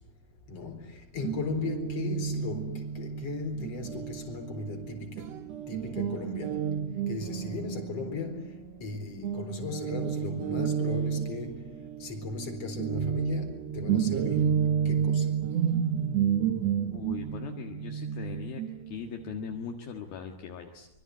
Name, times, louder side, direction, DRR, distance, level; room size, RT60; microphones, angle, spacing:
voice 1, 0.5-5.3 5.7-6.7 7.1-8.5 8.8-15.3, left 4 dB, 40° left, 4.9 m, -37 dB
Guitar, 1.2-8.9 9.2-19.7, right 8 dB, 60° right, 1.9 m, -31 dB
voice 2, 16.9-20.9, left 7 dB, 65° left, 3.4 m, -40 dB
25.0 x 24.0 x 9.6 m
omnidirectional pair, 4.7 m